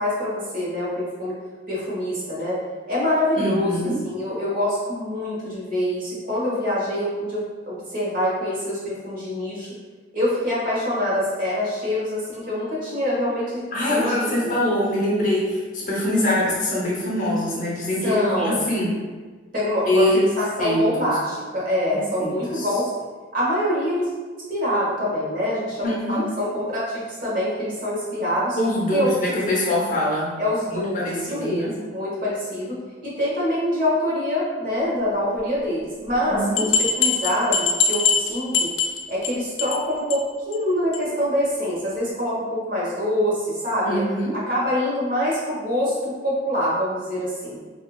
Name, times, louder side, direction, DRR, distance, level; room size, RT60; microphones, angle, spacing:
voice 1, 0.0-1.3 1.7-2.6 2.9-9.7 10.1-13.6 13.9-14.5 18.0-18.6 19.5-20.0 20.4-22.9 23.3-24.1 24.5-28.6 28.9-29.1 30.4-38.7 39.1-44.0 44.5-47.6, left 1 dB, 50° right, -7 dB, 1.3 m, -25 dB
voice 2, 3.4-4.0 13.7-18.9 19.9-20.2 20.6-21.1 22.2-22.7 25.8-26.3 28.6-30.3 30.7-31.7 36.3-36.7 43.8-44.4, left 1 dB, 45° left, -5 dB, 0.9 m, -23 dB
sound 1, 36.1-36.2 36.6-39.3 39.6-39.8 40.1-40.2 40.5-40.6 40.9-41.0, left 5 dB, 90° left, 0.4 m, -22 dB
4.1 x 2.7 x 2.3 m, 1.4 s
head